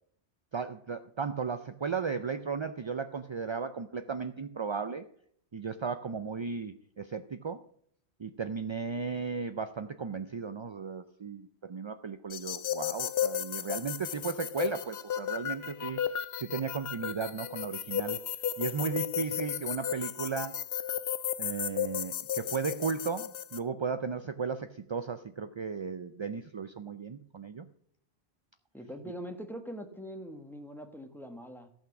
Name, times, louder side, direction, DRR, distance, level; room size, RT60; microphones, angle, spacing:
voice 1, 0.5-5.0 5.5-7.6 8.2-16.0 16.4-18.2 18.6-20.6 21.4-27.7, right 5 dB, 45° right, 9 dB, 0.4 m, -35 dB
sound 1, 12.3-23.6, left 10 dB, 70° left, 0.9 m, -34 dB
voice 2, 28.7-31.7, equal, ahead, 6 dB, 1.2 m, -42 dB
14.5 x 6.0 x 7.1 m, 0.64 s
omnidirectional pair, 1.1 m